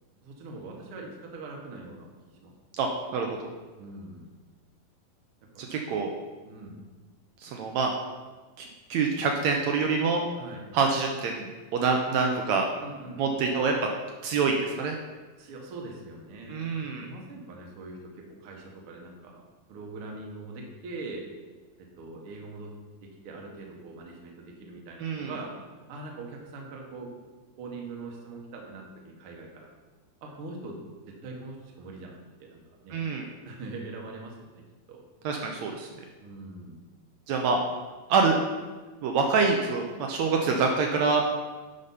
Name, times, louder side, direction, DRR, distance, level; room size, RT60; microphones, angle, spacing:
voice 1, 0.2-2.1 2.4-2.5 3.8-4.3 5.5-5.8 6.4-6.8 10.3-10.6 12.8-13.4 15.4-16.7 17.0-18.1 18.4-19.4 19.7-21.2 21.8-22.7 23.0-25.5 25.9-27.1 27.6-29.7 30.2-30.8 31.1-33.0 33.4-34.6 34.9-35.0 36.2-36.8, right 3 dB, 55° right, 0 dB, 1.7 m, -42 dB
voice 2, 2.8-3.4 5.6-6.1 7.4-7.9 8.6-10.2 10.7-12.7 13.2-13.7 14.2-15.0 16.5-17.0 25.0-25.3 32.9-33.2 35.2-35.9 37.3-37.6 38.1-38.4 39.0-41.2, right 4 dB, 80° right, 2 dB, 1.6 m, -26 dB
10.5 x 5.1 x 5.6 m, 1.3 s
omnidirectional pair, 4.0 m